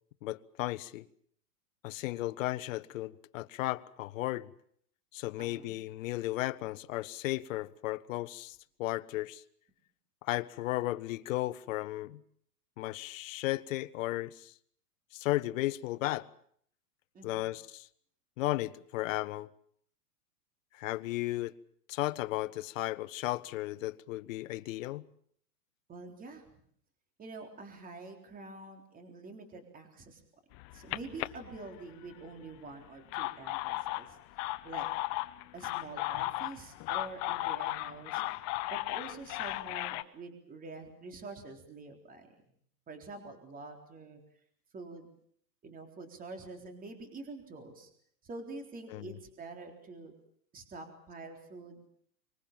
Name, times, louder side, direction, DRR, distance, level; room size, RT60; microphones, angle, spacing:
voice 1, 0.2-1.1 1.8-4.5 5.1-9.4 10.2-12.2 12.8-14.5 15.1-16.3 17.2-17.9 18.4-19.5 20.7-21.5 21.9-25.1 48.9-49.2, left 17 dB, 50° left, 1.1 m, -35 dB
voice 2, 5.4-5.8 17.1-17.4 25.9-26.6 27.2-30.2 30.7-34.2 34.6-34.9 35.5-38.2 38.7-42.4 42.9-44.2 44.7-45.1 45.6-47.9 48.2-50.1 50.5-51.9, right 3 dB, 15° right, 3.9 m, -46 dB
sound 1, 30.5-32.2 32.9-40.0, left 18 dB, 35° left, 1.0 m, -36 dB
25.5 x 21.5 x 7.5 m
hypercardioid pair, 145°, 49 cm